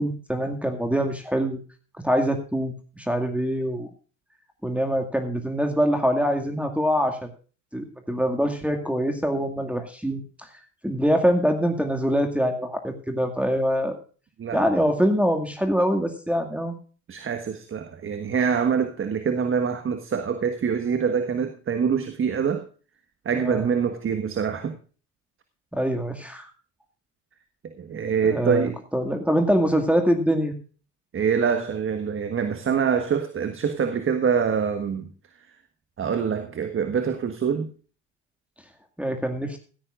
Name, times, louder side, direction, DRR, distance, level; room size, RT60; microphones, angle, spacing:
voice 1, 0.0-1.6 2.0-3.9 4.6-7.3 7.7-10.5 10.8-14.0 14.5-16.8 23.3-23.7 25.7-26.5 28.2-30.6 39.0-39.6, equal, 5° right, 2.2 m, -24 dB
voice 2, 17.1-22.6 23.2-24.7 27.8-28.8 31.1-35.1 36.0-37.7, right 6 dB, 35° right, 1.5 m, -25 dB
16.0 x 14.0 x 2.5 m
hypercardioid pair, 65°, 35 cm